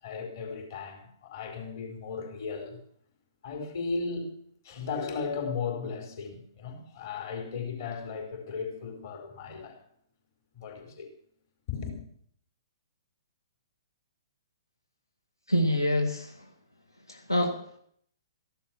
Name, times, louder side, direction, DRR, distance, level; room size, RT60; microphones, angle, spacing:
voice 1, 0.0-2.8 3.4-4.3 4.6-9.8 10.5-11.1 11.7-11.9, left 5 dB, 45° left, 4 dB, 4.5 m, -36 dB
voice 2, 15.5-16.5 17.1-17.8, left 1 dB, 85° left, 3 dB, 1.8 m, -27 dB
15.0 x 11.5 x 6.1 m, 0.65 s
figure-of-eight pair, 120°, 2 cm